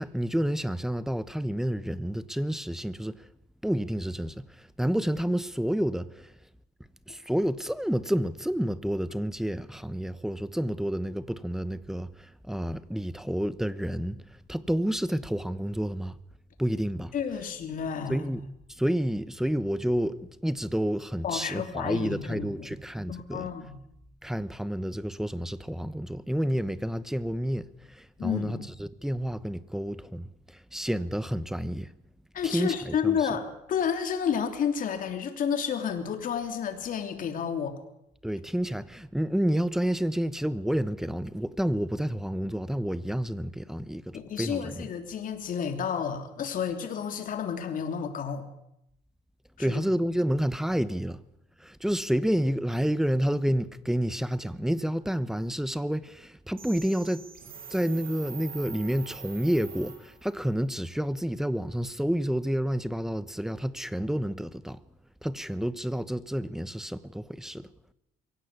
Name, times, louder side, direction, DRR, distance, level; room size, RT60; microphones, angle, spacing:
voice 1, 0.0-3.3 3.6-6.3 7.1-16.1 16.6-17.1 18.1-20.2 20.4-23.5 24.2-31.9 32.4-33.2 38.2-44.9 49.6-51.2 51.6-57.3 57.7-64.8 65.2-67.7, equal, 5° right, 1.0 m, -29 dB
voice 2, 17.1-18.2 21.2-22.7 23.1-23.8 28.2-28.7 32.3-37.8 44.1-48.5 49.6-49.8, left 7 dB, 55° left, 3.2 m, -31 dB
sound 1, 56.6-60.4, right 6 dB, 55° right, 6.3 m, -44 dB
23.5 x 16.5 x 8.4 m
cardioid pair, 110°, 17 cm